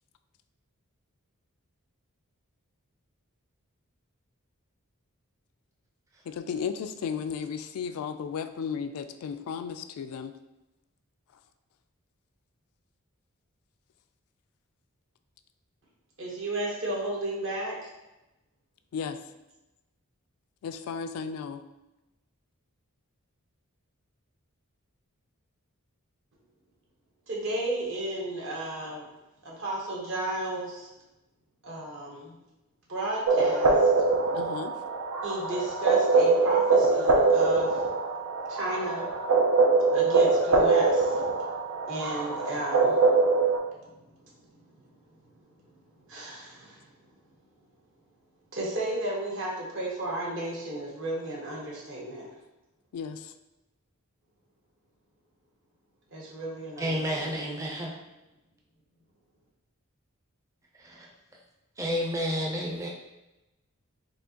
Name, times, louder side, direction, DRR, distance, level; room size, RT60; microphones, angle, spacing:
voice 1, 6.3-10.4 18.9-19.2 20.6-21.6 34.3-34.8 52.9-53.3, left 6 dB, 75° left, 9 dB, 0.3 m, -34 dB
voice 2, 16.2-17.9 27.3-29.0 29.4-30.9 31.6-32.3 32.9-33.9 35.2-37.8 38.5-39.0 39.9-41.1 41.9-43.0 43.8-43.9 46.1-46.8 48.5-52.3 56.1-57.5, right 1 dB, 60° right, -3 dB, 1.1 m, -33 dB
sound 1, 33.3-43.6, right 3 dB, 85° right, 0.6 m, -23 dB
voice 3, 56.8-57.9 60.8-61.1 61.8-62.9, equal, 15° right, -1 dB, 0.5 m, -30 dB
4.3 x 2.8 x 2.8 m, 0.98 s
head